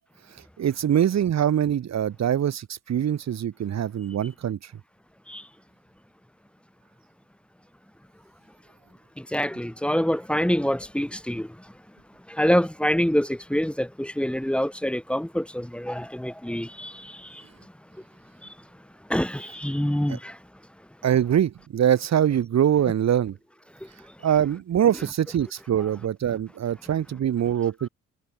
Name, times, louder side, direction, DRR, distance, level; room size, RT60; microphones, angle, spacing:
voice 1, 0.6-4.7 21.0-23.4 24.2-27.9, right 10 dB, 60° right, 3.4 m, -23 dB
voice 2, 9.2-11.7 12.3-17.4 18.4-18.5 19.1-20.4 23.8-23.9, equal, 5° left, 4.8 m, -26 dB
cardioid pair, 90°, 30 cm